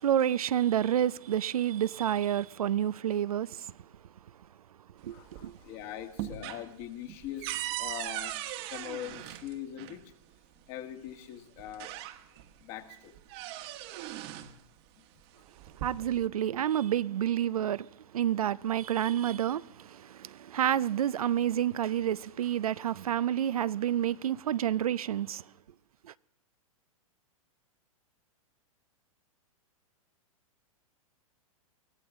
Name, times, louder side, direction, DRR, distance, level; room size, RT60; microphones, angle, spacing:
voice 1, 0.0-3.7 5.0-5.5 15.8-17.9 18.1-25.4, right 10 dB, 80° right, 0.5 m, -29 dB
sound 1, 5.0-5.7 6.0-10.0 11.1-11.2 11.6-12.5 12.9-14.6 15.5-16.3, right 13 dB, 45° right, 1.3 m, -39 dB
voice 2, 5.1-8.4 8.7-10.0 10.7-11.9 12.6-13.1 15.0-15.1, left 11 dB, 45° left, 1.8 m, -42 dB
22.0 x 15.0 x 3.6 m
hypercardioid pair, 115°, 18 cm